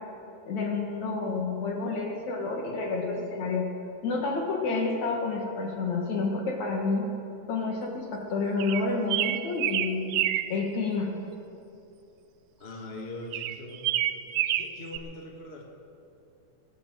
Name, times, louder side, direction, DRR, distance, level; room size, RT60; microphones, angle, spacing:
voice 1, 0.5-3.7 4.0-7.1 7.5-10.2 10.5-11.1, left 3 dB, 65° left, 1 dB, 2.9 m, -29 dB
sound 1, 8.6-10.5 13.3-15.0, right 13 dB, 85° right, 2.2 m, -28 dB
voice 2, 12.6-15.6, left 2 dB, 40° left, 0 dB, 0.9 m, -42 dB
19.5 x 7.1 x 7.6 m, 2.7 s
omnidirectional pair, 3.8 m